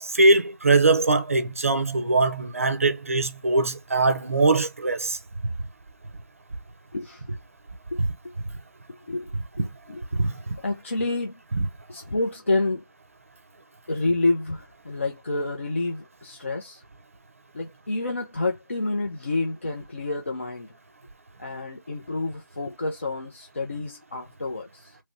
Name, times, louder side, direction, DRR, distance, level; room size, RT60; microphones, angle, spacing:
voice 1, 0.0-5.2 10.1-10.3, right 2 dB, 40° right, 0.6 m, -21 dB
voice 2, 6.9-7.4 7.9-8.3 8.9-10.3 10.6-11.4 11.9-12.8 13.9-16.8 17.5-20.7 21.4-25.0, left 2 dB, 35° left, 0.6 m, -29 dB
3.3 x 3.1 x 2.6 m
figure-of-eight pair, 170°, 11 cm